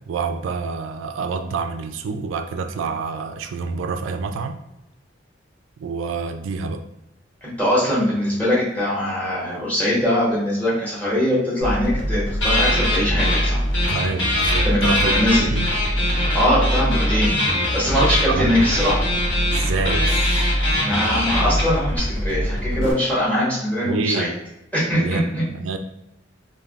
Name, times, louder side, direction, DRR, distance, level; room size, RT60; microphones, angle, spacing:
voice 1, 0.1-4.6 5.8-6.8 13.9-15.7 18.3-18.6 19.5-20.5 22.8-22.9 23.8-24.3 24.9-25.8, right 4 dB, 90° right, 7 dB, 0.3 m, -27 dB
voice 2, 7.4-13.6 14.6-15.5 16.3-17.3 17.7-19.1 20.8-24.3 24.7-25.4, equal, 10° left, -7 dB, 1.1 m, -22 dB
sound 1, 11.6-22.9, equal, 90° left, 0.7 m, -24 dB
sound 2, 12.4-13.5 13.7-22.0, left 1 dB, 70° left, 1.1 m, -23 dB
3.3 x 2.2 x 2.3 m, 0.86 s
head